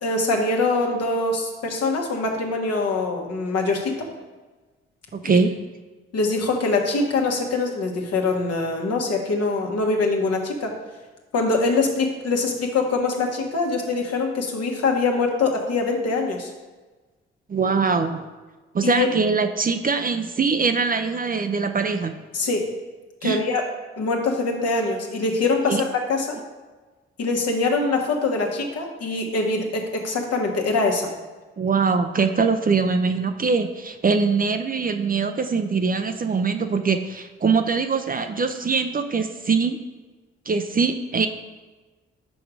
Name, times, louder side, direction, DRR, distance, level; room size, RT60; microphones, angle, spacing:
voice 1, 0.0-4.1 5.3-5.5 6.1-10.7 11.3-16.5 18.8-19.1 22.3-22.7 23.2-23.6 24.0-26.4 27.2-31.1, left 3 dB, 60° left, 1 dB, 1.4 m, -23 dB
voice 2, 5.1-5.5 17.5-18.3 18.7-22.2 23.2-23.4 25.7-25.8 31.6-39.8 40.5-41.3, right 4 dB, 30° right, 7 dB, 0.6 m, -22 dB
6.1 x 4.9 x 4.8 m, 1.3 s
hypercardioid pair, 45°, 29 cm